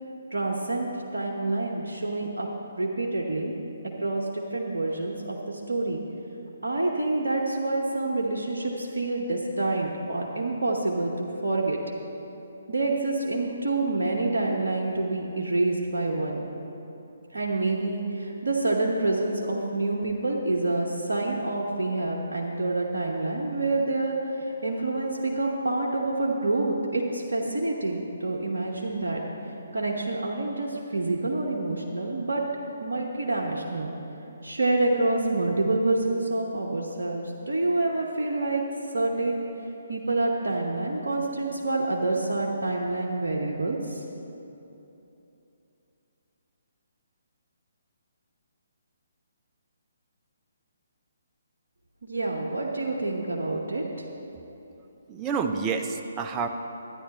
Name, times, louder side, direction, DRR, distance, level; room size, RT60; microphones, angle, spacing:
voice 1, 0.3-3.6 3.8-6.0 6.6-11.8 12.7-16.5 17.3-32.4 32.8-33.9 34.4-38.6 38.9-39.5 39.9-44.0 52.0-53.9, right 2 dB, 70° right, -2 dB, 1.0 m, -27 dB
voice 2, 55.1-56.5, right 5 dB, 20° right, 5 dB, 0.5 m, -28 dB
12.5 x 9.8 x 4.2 m, 3.0 s
figure-of-eight pair, 135°, 0 cm